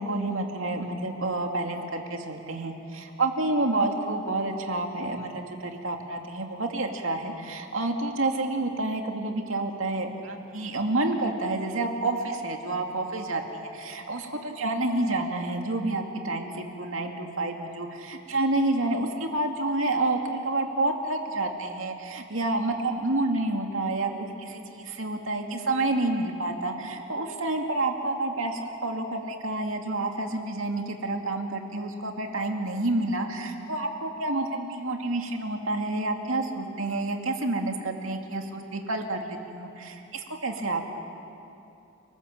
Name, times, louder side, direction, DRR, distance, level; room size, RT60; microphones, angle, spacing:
voice 1, 0.0-24.1 24.4-41.0, right 2 dB, 70° right, 3 dB, 2.5 m, -29 dB
29.5 x 19.5 x 7.7 m, 2.8 s
head